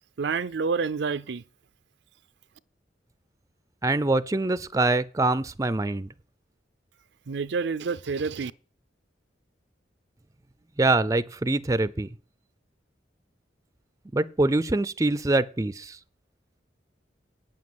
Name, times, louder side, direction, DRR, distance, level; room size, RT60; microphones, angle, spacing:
voice 1, 0.2-1.4 7.3-8.5, right 5 dB, 70° right, 0.5 m, -28 dB
voice 2, 3.8-6.1 10.8-12.1 14.1-16.0, right 2 dB, 20° right, 0.5 m, -24 dB
9.1 x 7.3 x 7.9 m
head